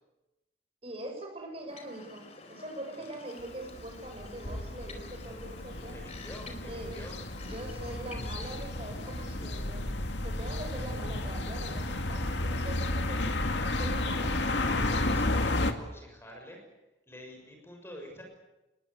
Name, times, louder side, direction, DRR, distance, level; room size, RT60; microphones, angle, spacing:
voice 1, 0.8-6.0 6.5-7.0 7.4-9.8 10.2-13.4 13.6-14.4, right 1 dB, 35° right, 3 dB, 6.7 m, -43 dB
sound 1, 1.7-9.5, left 3 dB, 35° left, 4.1 m, -49 dB
voice 2, 2.9-3.4 5.9-7.2 14.6-16.6 17.1-18.2, left 1 dB, 15° left, 2 dB, 6.6 m, -48 dB
sound 2, 3.7-15.7, left 2 dB, 90° left, 2.2 m, -32 dB
27.5 x 21.0 x 8.3 m, 1.0 s
head